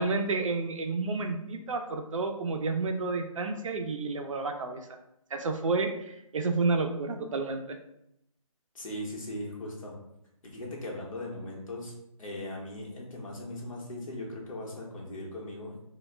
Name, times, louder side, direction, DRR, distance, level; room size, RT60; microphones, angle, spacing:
voice 1, 0.0-4.9 5.3-7.8, right 3 dB, 65° right, 5 dB, 0.4 m, -30 dB
voice 2, 8.7-9.9 10.4-11.9 12.2-15.8, left 1 dB, 70° left, -2 dB, 1.0 m, -39 dB
2.2 x 2.0 x 3.3 m, 0.80 s
hypercardioid pair, 165°, 18 cm